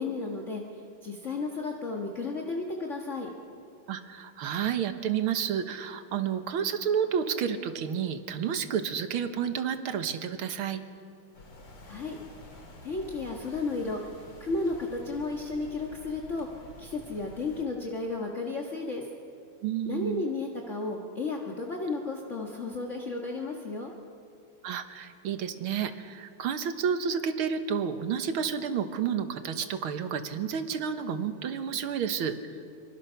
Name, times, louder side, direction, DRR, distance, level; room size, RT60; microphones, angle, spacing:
voice 1, 0.0-3.3 11.8-12.2 12.8-14.0 14.4-19.1 19.9-23.9, left 3 dB, 35° left, 0 dB, 1.8 m, -33 dB
voice 2, 3.9-10.8 19.6-20.2 24.6-32.4, right 7 dB, 80° right, 9 dB, 2.1 m, -30 dB
sound 1, 11.3-17.6, left 1 dB, 85° left, 3.8 m, -49 dB
26.5 x 24.5 x 5.8 m, 2.5 s
omnidirectional pair, 2.3 m